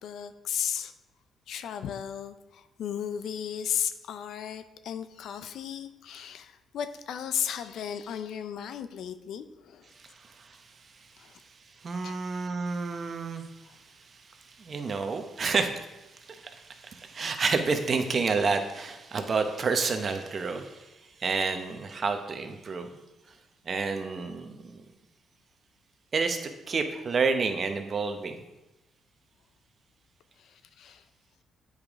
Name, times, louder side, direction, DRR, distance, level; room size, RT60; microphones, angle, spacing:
voice 1, 0.0-0.9 1.5-9.9 11.2-11.3 12.0-12.1 30.4-31.0, left 8 dB, 75° left, 11 dB, 0.4 m, -35 dB
voice 2, 10.0-11.3 11.8-20.9 21.2-22.9 23.6-24.8 26.1-28.4, right 4 dB, 45° right, 6 dB, 0.8 m, -30 dB
8.1 x 5.1 x 3.6 m, 1.0 s
cardioid pair, 90°, 0 cm